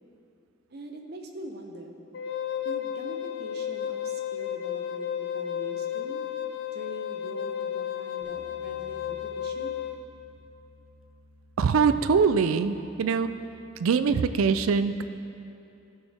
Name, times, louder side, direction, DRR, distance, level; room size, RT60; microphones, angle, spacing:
voice 1, 0.7-2.0 2.6-6.2 6.7-9.8, right 1 dB, 50° right, 3 dB, 0.8 m, -43 dB
Wind instrument woodwind instrument, 2.1-10.0, left 9 dB, 55° left, 0.4 m, -33 dB
Bass guitar, 8.2-14.4, left 1 dB, 30° right, 2.0 m, -55 dB
voice 2, 11.6-13.3 13.8-15.0, right 5 dB, 90° right, 11 dB, 0.4 m, -23 dB
14.5 x 6.4 x 3.5 m, 2.8 s
head